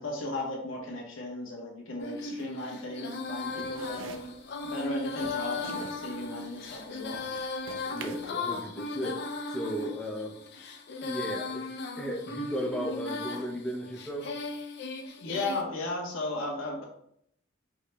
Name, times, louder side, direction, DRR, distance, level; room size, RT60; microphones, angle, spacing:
voice 1, 0.0-4.2 4.6-7.2 15.2-16.8, left 2 dB, 90° left, -1 dB, 1.1 m, -35 dB
Female singing, 2.0-15.6, left 3 dB, 60° left, 0.5 m, -37 dB
sound 1, 3.2-8.3, right 5 dB, 70° right, 0.3 m, -47 dB
voice 2, 7.8-10.4 11.0-11.7 11.9-14.3, equal, 5° left, -1 dB, 0.5 m, -35 dB
4.7 x 3.0 x 2.2 m, 0.68 s
head